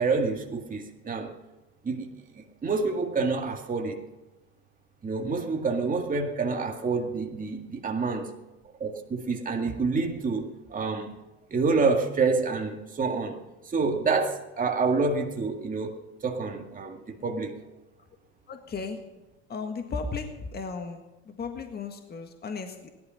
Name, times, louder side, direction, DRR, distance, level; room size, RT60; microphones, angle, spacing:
voice 1, 0.0-1.3 1.8-2.1 2.6-4.0 5.0-8.3 8.8-11.2 11.5-17.5, right 4 dB, 25° right, 2 dB, 2.1 m, -28 dB
voice 2, 18.5-19.0 19.5-22.9, left 4 dB, 30° left, 5 dB, 1.8 m, -35 dB
17.5 x 12.0 x 5.7 m, 1.1 s
supercardioid pair, 90°, 33 cm